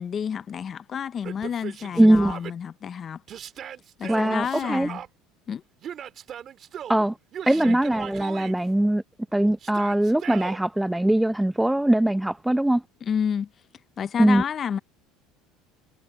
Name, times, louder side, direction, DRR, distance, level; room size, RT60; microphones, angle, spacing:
voice 1, 0.0-3.2 4.0-5.0 5.5-5.6 7.6-7.8 13.0-13.5 14.0-14.8, left 7 dB, 35° left, 0.7 m, -29 dB
Yell, 1.2-2.5 3.3-5.1 5.8-7.0 7.3-8.6 9.6-10.6, right 9 dB, 45° right, 2.2 m, -38 dB
voice 2, 2.0-2.3 4.1-4.9 6.9-7.1 7.5-9.0 9.3-12.8 14.2-14.4, right 1 dB, 5° right, 0.7 m, -21 dB
supercardioid pair, 105°, 0 cm